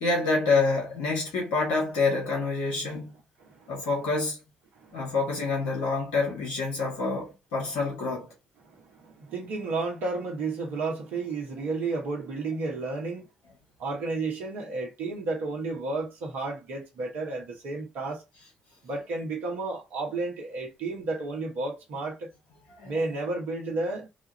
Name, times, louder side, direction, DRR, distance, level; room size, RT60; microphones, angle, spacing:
voice 1, 0.0-3.1 3.7-4.4 4.9-8.3 22.8-22.9, left 3 dB, 85° left, 1.6 m, -27 dB
voice 2, 3.4-3.8 4.7-5.1 8.6-13.3 13.8-18.2 18.8-22.3 22.8-24.1, right 3 dB, 75° right, 1.0 m, -32 dB
3.9 x 2.4 x 3.0 m
hypercardioid pair, 45°, 3 cm